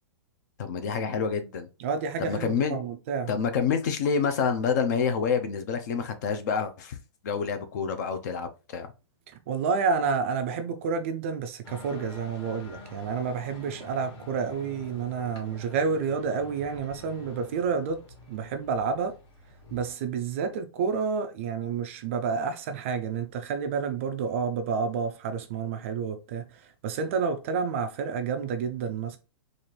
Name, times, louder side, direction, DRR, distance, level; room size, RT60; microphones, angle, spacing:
voice 1, 0.6-1.7 2.2-2.8 3.3-7.0 7.2-8.9, left 6 dB, 40° left, 0.5 m, -27 dB
voice 2, 1.8-3.3 9.3-18.0 18.3-19.1 19.7-29.2, right 5 dB, 30° right, 0.3 m, -29 dB
sound 1, 11.6-19.9, left 1 dB, 60° left, 2.1 m, -47 dB
4.1 x 2.5 x 3.2 m
hypercardioid pair, 170°, 15 cm